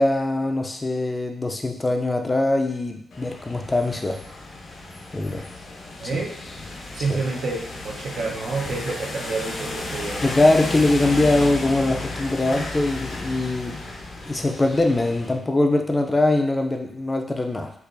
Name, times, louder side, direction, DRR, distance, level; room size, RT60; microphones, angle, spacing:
voice 1, 0.0-4.2 5.1-5.4 7.1-7.2 10.2-13.8 14.3-17.7, left 2 dB, 20° left, 3 dB, 0.4 m, -22 dB
sound 1, 3.1-15.3, left 2 dB, 70° left, 0.7 m, -34 dB
voice 2, 6.0-6.3 6.9-7.6 7.8-10.3, right 3 dB, 80° right, -2 dB, 0.8 m, -28 dB
4.5 x 2.5 x 2.6 m, 0.70 s
wide cardioid pair, 120°, 0 cm